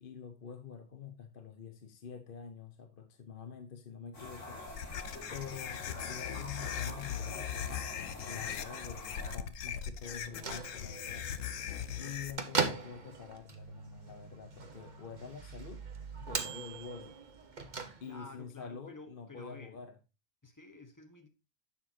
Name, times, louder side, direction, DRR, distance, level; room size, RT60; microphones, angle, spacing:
voice 1, 0.0-4.6 5.3-7.9 8.3-11.3 12.0-15.8 16.2-17.1 18.0-20.0, left 6 dB, 50° left, 1.0 m, -47 dB
sound 1, 4.1-9.4, left 2 dB, 70° left, 2.9 m, -46 dB
sound 2, 4.7-12.3, left 9 dB, 85° left, 1.2 m, -39 dB
Bell / Microwave oven, 10.1-18.4, right 4 dB, 40° right, 1.2 m, -40 dB
voice 2, 18.1-19.8 20.4-21.3, left 3 dB, 15° left, 1.3 m, -51 dB
10.5 x 7.1 x 2.8 m
omnidirectional pair, 1.3 m